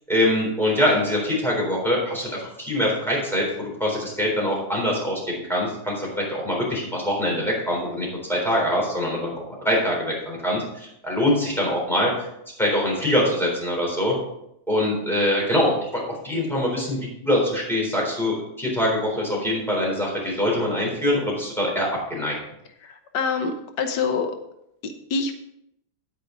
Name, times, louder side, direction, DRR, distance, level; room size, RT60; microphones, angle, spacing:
voice 1, 0.1-9.3 9.6-12.1 12.6-14.1 14.7-22.3, left 1 dB, ahead, -3 dB, 3.8 m, -24 dB
voice 2, 22.8-24.4 24.8-25.4, left 5 dB, 85° left, 7 dB, 1.5 m, -26 dB
9.3 x 9.0 x 3.9 m, 0.79 s
omnidirectional pair, 1.8 m